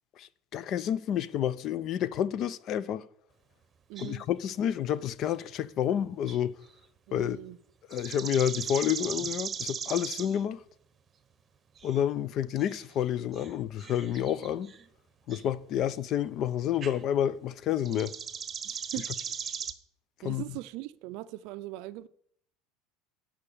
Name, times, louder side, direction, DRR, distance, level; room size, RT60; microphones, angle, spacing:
voice 1, 0.2-3.1 4.0-6.6 7.1-7.4 7.9-10.6 11.8-14.7 15.3-18.1 20.2-20.4, left 10 dB, 50° left, 0.5 m, -29 dB
voice 2, 3.9-4.2 7.1-7.6 18.6-19.1 19.4-19.5 20.2-22.1, right 17 dB, 65° right, 0.4 m, -40 dB
sound 1, 4.0-4.1 5.9-6.0 6.3-6.4 7.9-10.4 11.8-12.0 12.6-14.9 15.3-15.4 16.8-17.0 17.8-19.7, right 7 dB, 30° right, 0.9 m, -38 dB
9.8 x 5.1 x 7.1 m
hypercardioid pair, 90°, 0 cm